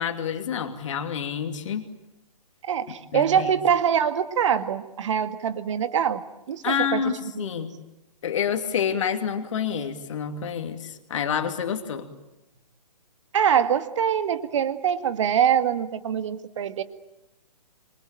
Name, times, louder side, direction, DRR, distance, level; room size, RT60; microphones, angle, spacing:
voice 1, 0.0-1.9 3.1-3.5 6.6-7.7 8.2-12.1, left 7 dB, 50° left, 6 dB, 2.8 m, -28 dB
voice 2, 2.6-6.2 6.5-7.0 7.4-7.7 13.3-16.8, right 8 dB, 45° right, 11 dB, 2.0 m, -24 dB
26.5 x 24.0 x 9.0 m, 0.91 s
figure-of-eight pair, 135°, 21 cm